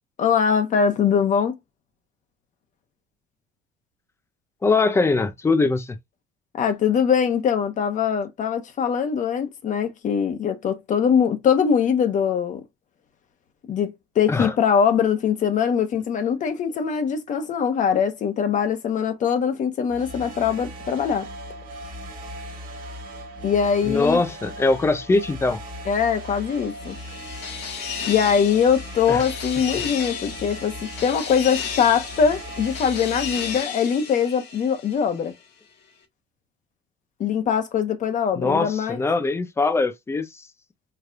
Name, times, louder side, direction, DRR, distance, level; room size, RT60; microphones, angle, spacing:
voice 1, 0.2-1.5 6.6-12.6 13.7-21.3 23.4-24.2 25.9-27.0 28.1-30.7 31.0-35.3 37.2-39.0, left 7 dB, 45° left, 1.1 m, -22 dB
voice 2, 4.6-6.0 14.3-14.5 23.8-25.6 29.1-29.2 29.7-29.8 38.3-40.3, left 3 dB, 15° left, 0.6 m, -22 dB
sound 1, 19.9-33.6, right 1 dB, 50° right, 1.6 m, -38 dB
sound 2, 26.2-35.3, left 7 dB, 65° left, 1.6 m, -34 dB
4.8 x 3.1 x 2.4 m
cardioid pair, 145°, 18 cm